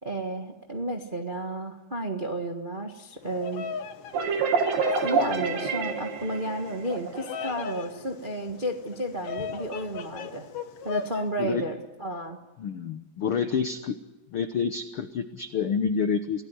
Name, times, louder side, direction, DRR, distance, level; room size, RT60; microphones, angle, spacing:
voice 1, 0.0-3.7 5.0-10.5 10.8-12.4, right 1 dB, 40° right, 3 dB, 0.7 m, -32 dB
Bird vocalization bird call bird song, 3.2-11.3, left 6 dB, 55° left, 1.8 m, -37 dB
sound 1, 4.1-7.7, right 5 dB, 85° right, 4.2 m, -28 dB
voice 2, 12.6-14.0 14.3-16.4, left 6 dB, 70° left, 9 dB, 1.2 m, -28 dB
27.5 x 18.0 x 9.7 m, 1.1 s
omnidirectional pair, 3.9 m